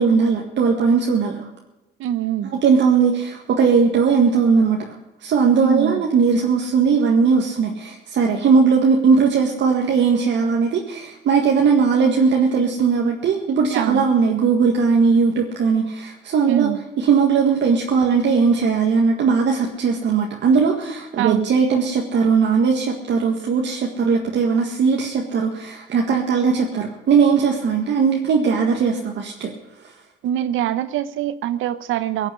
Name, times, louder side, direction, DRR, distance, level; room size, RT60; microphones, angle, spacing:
voice 1, 0.0-1.5 2.6-16.7 17.0-29.5, right 5 dB, 65° right, 0 dB, 1.9 m, -18 dB
voice 2, 2.0-2.5 5.6-6.1 13.7-14.1 16.5-16.8 21.2-21.5 30.2-32.3, right 11 dB, 85° right, 14 dB, 1.0 m, -24 dB
17.5 x 7.2 x 9.8 m, 1.0 s
cardioid pair, 90°, 20 cm